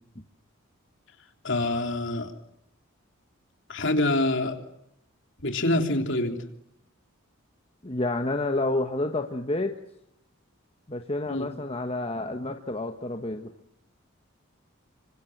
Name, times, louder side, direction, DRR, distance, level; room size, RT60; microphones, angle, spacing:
voice 1, 1.4-2.3 3.7-4.6 5.4-6.4 11.3-11.5, left 2 dB, 55° left, 4 dB, 3.5 m, -26 dB
voice 2, 7.8-9.7 10.9-13.5, left 2 dB, 25° left, 5 dB, 1.3 m, -29 dB
27.5 x 25.5 x 8.0 m, 0.79 s
head